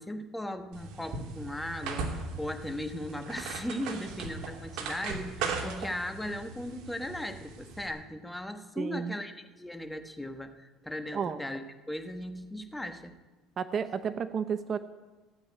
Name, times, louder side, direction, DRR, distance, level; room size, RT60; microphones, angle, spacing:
voice 1, 0.0-13.2, left 1 dB, 5° left, 8 dB, 1.2 m, -38 dB
sound 1, 0.7-7.9, right 4 dB, 65° right, 2.9 m, -38 dB
voice 2, 8.8-9.2 11.1-11.4 13.6-14.8, right 7 dB, 35° right, 12 dB, 0.7 m, -32 dB
15.5 x 8.9 x 9.5 m, 1.2 s
cardioid pair, 125°, 0 cm